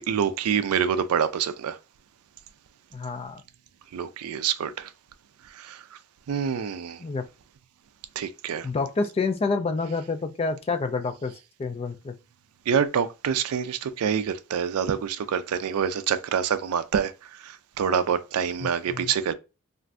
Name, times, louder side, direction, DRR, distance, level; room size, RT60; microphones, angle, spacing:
voice 1, 0.0-1.8 3.9-4.9 5.6-5.8 6.3-7.0 8.2-8.7 12.7-17.1 17.4-19.3, right 7 dB, 80° right, 0.4 m, -26 dB
voice 2, 2.9-3.4 7.0-7.3 8.6-11.3 11.6-12.2 18.6-19.1, left 4 dB, 25° left, 0.3 m, -28 dB
3.2 x 2.5 x 2.4 m
head